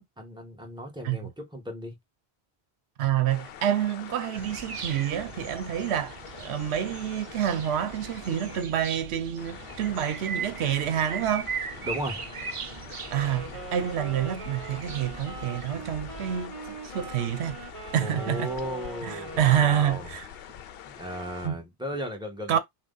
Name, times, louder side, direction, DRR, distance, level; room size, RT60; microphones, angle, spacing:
voice 1, 0.0-2.0 11.8-12.2 18.0-20.1 20.4-20.5 20.9-22.6, equal, 5° right, 1.2 m, -35 dB
voice 2, 3.0-11.5 13.1-17.6 17.9-18.5 19.0-20.2 21.4-21.5 22.5-22.6, right 10 dB, 80° right, 0.9 m, -28 dB
sound 1, 3.3-8.6 9.4-21.5, left 10 dB, 65° left, 0.7 m, -45 dB
sound 2, 4.3-16.5, right 7 dB, 55° right, 0.3 m, -39 dB
Wind instrument woodwind instrument, 13.0-20.2, right 3 dB, 30° right, 1.0 m, -42 dB
6.0 x 2.3 x 3.9 m
omnidirectional pair, 1.1 m